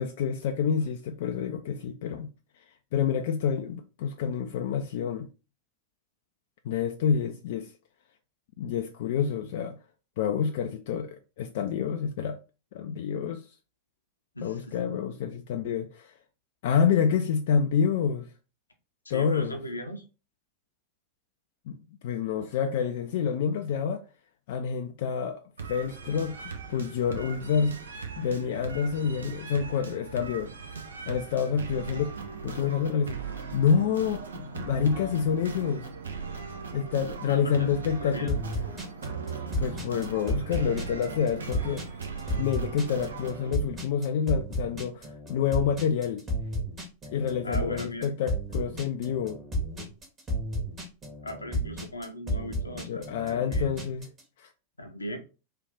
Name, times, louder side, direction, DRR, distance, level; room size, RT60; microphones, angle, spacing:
voice 1, 0.0-2.3 2.9-5.3 6.6-7.7 8.6-9.8 10.2-12.4 12.7-13.4 14.4-16.1 16.6-18.3 19.1-19.6 21.7-21.8 22.0-24.0 24.5-25.4 25.7-27.8 28.2-30.5 31.1-32.1 32.4-35.9 36.7-38.4 39.6-41.8 42.4-46.2 47.1-49.4 49.8-49.9 52.9-54.1 54.4-54.5, left 7 dB, 55° left, 0.3 m, -28 dB
voice 2, 14.3-14.8 19.0-20.0 37.3-37.7 38.0-38.3 47.1-48.1 51.2-53.7 54.8-55.2, left 1 dB, 80° left, 0.7 m, -38 dB
sound 1, 25.6-43.5, right 5 dB, 70° right, 0.6 m, -39 dB
sound 2, 38.3-54.2, equal, 25° right, 1.3 m, -33 dB
3.3 x 2.5 x 3.7 m
figure-of-eight pair, 90°, 0 cm